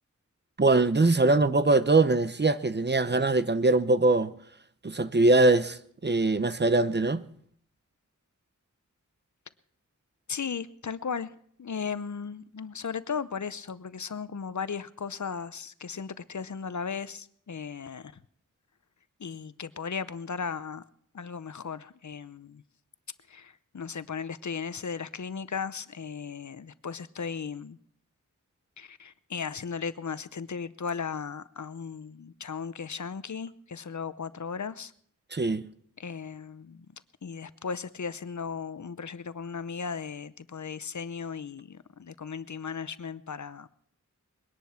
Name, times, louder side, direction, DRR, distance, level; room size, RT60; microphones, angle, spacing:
voice 1, 0.6-4.3 4.8-7.2 35.3-35.7, right 2 dB, 35° right, 0.8 m, -22 dB
voice 2, 10.3-11.3 11.6-18.1 19.2-20.8 21.1-22.6 23.3-27.8 28.8-34.9 36.0-36.9 37.2-43.7, left 6 dB, 65° left, 0.7 m, -36 dB
21.5 x 10.5 x 5.8 m
wide cardioid pair, 75°, 32 cm